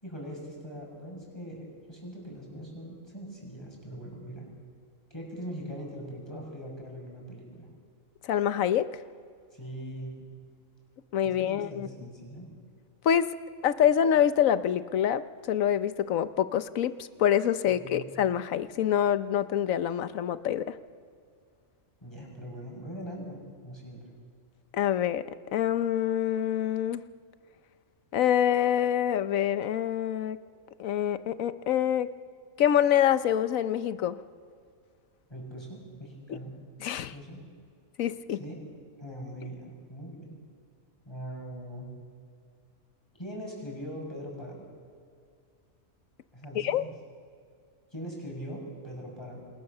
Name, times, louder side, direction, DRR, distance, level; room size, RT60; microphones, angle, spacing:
voice 1, 0.0-4.5 5.1-7.7 9.5-10.1 11.2-12.5 17.8-18.1 22.0-24.0 35.3-36.5 37.1-37.4 38.4-38.6 39.0-40.4 41.0-41.9 43.2-44.6 46.3-46.9 47.9-49.4, equal, 20° left, -1 dB, 6.5 m, -41 dB
voice 2, 8.2-8.9 11.1-11.9 13.0-13.3 13.6-20.7 24.7-25.2 25.5-27.0 28.1-30.4 30.8-32.1 32.6-34.2 36.3-36.4 36.8-37.1 38.0-38.4 46.5-46.8, left 10 dB, 85° left, 13 dB, 1.2 m, -26 dB
27.5 x 19.5 x 6.7 m, 2.2 s
omnidirectional pair, 1.4 m